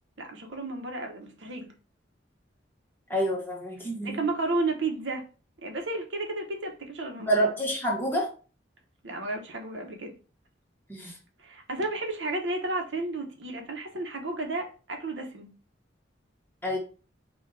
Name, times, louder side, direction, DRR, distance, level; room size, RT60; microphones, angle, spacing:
voice 1, 0.2-1.7 4.0-5.3 5.6-7.3 9.0-10.2 11.4-15.5, right 2 dB, 70° right, 1.0 m, -32 dB
voice 2, 3.1-4.2 7.3-8.3 10.9-11.1 16.6-16.8, right 1 dB, 10° left, 1.2 m, -27 dB
5.8 x 2.5 x 3.2 m
head